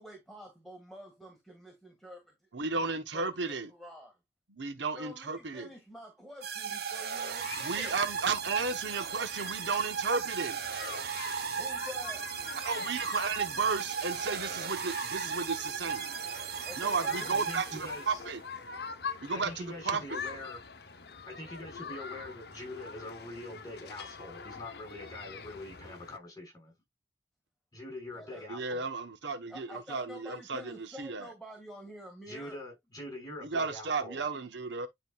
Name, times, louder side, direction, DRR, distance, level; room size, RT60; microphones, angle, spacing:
voice 1, 0.0-2.3 3.1-3.2 3.7-4.2 4.9-8.0 11.6-12.4 16.6-17.3 21.1-21.2 28.2-28.4 29.5-32.6, left 1 dB, ahead, 1.9 m, -48 dB
voice 2, 2.5-3.7 4.5-5.7 7.6-10.6 12.6-16.1 16.8-18.4 19.2-20.2 28.5-31.3 33.4-34.9, right 4 dB, 75° right, 1.2 m, -34 dB
sound 1, 6.4-18.2, right 6 dB, 55° right, 1.0 m, -36 dB
sound 2, 7.4-26.2, left 5 dB, 55° left, 0.9 m, -45 dB
voice 3, 17.1-18.2 19.3-20.6 21.3-26.7 27.7-28.8 32.3-34.2, left 1 dB, 20° left, 5.5 m, -44 dB
10.5 x 5.1 x 2.4 m
head